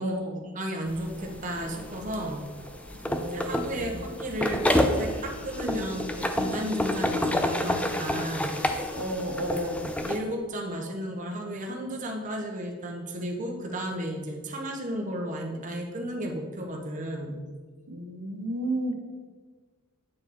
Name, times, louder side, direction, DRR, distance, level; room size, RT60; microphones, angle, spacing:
voice 1, 0.0-0.4 3.0-4.1 9.0-9.9 17.9-19.0, right 1 dB, 85° right, 4 dB, 1.1 m, -32 dB
voice 2, 0.5-2.4 3.0-9.0 9.5-9.7 10.0-17.4, right 1 dB, 35° right, 1 dB, 1.0 m, -34 dB
sound 1, 0.9-10.2, left 1 dB, 5° left, 0.3 m, -29 dB
Wind instrument woodwind instrument, 1.1-8.5, left 1 dB, 65° right, 1.3 m, -55 dB
8.7 x 4.8 x 4.2 m, 1.5 s
head